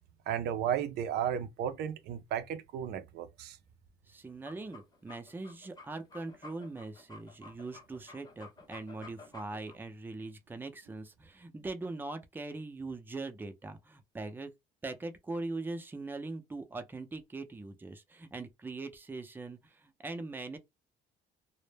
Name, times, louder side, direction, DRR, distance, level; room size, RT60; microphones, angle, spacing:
voice 1, 0.3-3.6, right 9 dB, 75° right, 0.4 m, -34 dB
voice 2, 4.1-14.5 14.8-20.6, right 3 dB, 10° right, 0.5 m, -41 dB
sound 1, 4.3-9.8, left 3 dB, 25° left, 0.7 m, -52 dB
2.0 x 2.0 x 3.2 m
cardioid pair, 110°, 17 cm